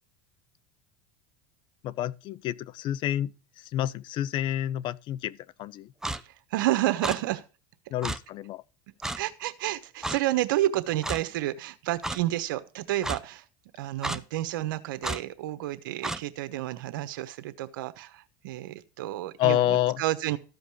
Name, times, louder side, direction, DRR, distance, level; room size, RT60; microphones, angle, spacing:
voice 1, 1.8-3.3 3.7-5.9 7.9-8.6 19.4-20.0, left 13 dB, 50° left, 0.5 m, -28 dB
Clock, 6.0-6.2 7.0-7.2 8.0-8.2 9.0-9.2 10.0-10.2 11.0-11.2 12.0-12.2 13.0-13.2 14.0-14.2 15.0-15.2 16.0-16.2, right 1 dB, 5° right, 0.7 m, -31 dB
voice 2, 6.5-7.4 9.1-13.4 13.8-20.4, right 15 dB, 80° right, 1.2 m, -30 dB
14.0 x 5.3 x 6.3 m
supercardioid pair, 110°, 11 cm